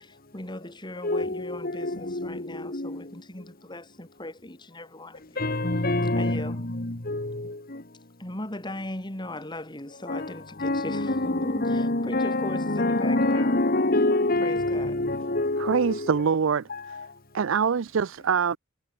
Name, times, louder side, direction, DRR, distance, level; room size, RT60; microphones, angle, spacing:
voice 1, 0.0-5.4 6.2-6.6 8.2-13.6 14.4-15.0, left 1 dB, 25° left, 3.4 m, -38 dB
voice 2, 1.0-3.0 5.4-7.8 10.1-10.3 10.6-16.2 16.7-17.1, left 2 dB, 50° left, 2.1 m, -26 dB
voice 3, 15.6-16.7 17.3-18.6, right 6 dB, 80° right, 0.5 m, -24 dB
head